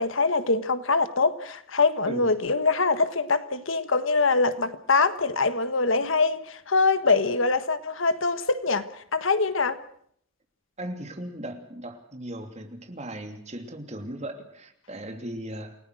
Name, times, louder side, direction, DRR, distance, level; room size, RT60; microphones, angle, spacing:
voice 1, 0.0-8.8 9.1-9.8, left 3 dB, 70° left, 1.4 m, -23 dB
voice 2, 10.8-15.8, right 1 dB, 35° right, 3.0 m, -37 dB
29.0 x 18.5 x 6.3 m
head